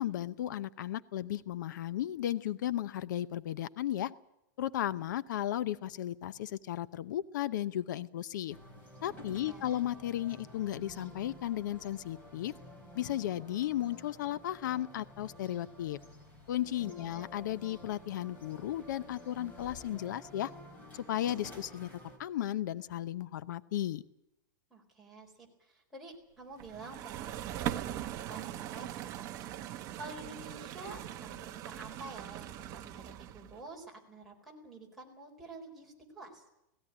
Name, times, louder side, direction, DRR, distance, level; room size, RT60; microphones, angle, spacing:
voice 1, 0.0-4.1 4.6-8.6 9.0-12.5 12.9-16.0 16.5-20.5 20.9-21.9 22.2-24.0, left 12 dB, 65° left, 17 dB, 0.7 m, -35 dB
sound 1, 8.5-22.2, left 1 dB, 15° left, 4.1 m, -51 dB
voice 2, 9.4-9.8 16.8-17.3 24.7-36.4, right 3 dB, ahead, -4 dB, 4.3 m, -49 dB
sound 2, 26.6-33.6, right 12 dB, 30° right, 0.9 m, -41 dB
17.5 x 16.5 x 10.0 m, 0.87 s
supercardioid pair, 165°, 11 cm